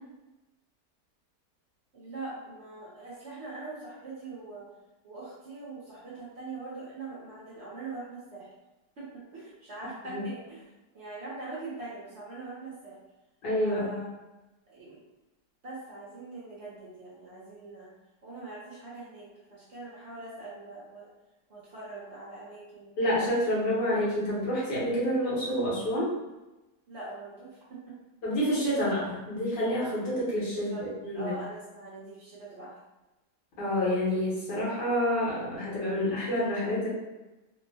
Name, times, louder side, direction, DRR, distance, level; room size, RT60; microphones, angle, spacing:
voice 1, 1.9-4.7 5.0-8.5 9.0-10.6 10.9-13.0 13.6-14.1 14.7-15.0 15.6-17.9 18.2-21.1 21.5-23.0 26.9-27.9 30.5-30.9 31.1-32.7, right 3 dB, 50° right, -8 dB, 0.9 m, -42 dB
voice 2, 13.4-13.9 23.0-26.1 28.2-31.3 33.6-36.9, equal, 80° left, -7 dB, 1.7 m, -28 dB
3.6 x 2.1 x 2.7 m, 1.0 s
omnidirectional pair, 1.8 m